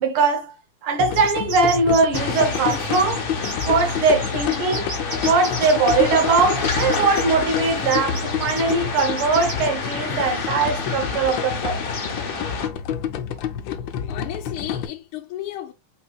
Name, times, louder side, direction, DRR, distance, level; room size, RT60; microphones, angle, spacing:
voice 1, 0.0-0.5 0.8-3.2 3.7-4.9 5.2-11.9, right 4 dB, 80° right, 1.8 m, -21 dB
sound 1, 1.0-14.9, left 8 dB, 70° left, 1.3 m, -28 dB
sound 2, 1.0-7.2 7.9-9.7, right 2 dB, 40° right, 2.5 m, -33 dB
sound 3, 2.1-12.7, left 4 dB, 45° left, 0.7 m, -29 dB
voice 2, 14.1-15.7, left 12 dB, 85° left, 1.5 m, -33 dB
5.2 x 4.5 x 2.3 m
omnidirectional pair, 2.3 m